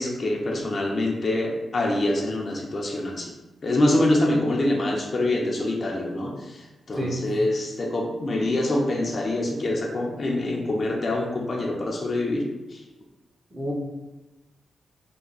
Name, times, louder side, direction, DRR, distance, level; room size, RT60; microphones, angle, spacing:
voice 1, 0.0-3.3 3.6-12.4 12.7-12.8, left 1 dB, 45° left, -1 dB, 0.6 m, -25 dB
voice 2, 7.0-7.3 13.5-13.7, right 1 dB, 25° right, -2 dB, 0.9 m, -29 dB
3.4 x 2.2 x 4.0 m, 1.1 s
cardioid pair, 80°, 0 cm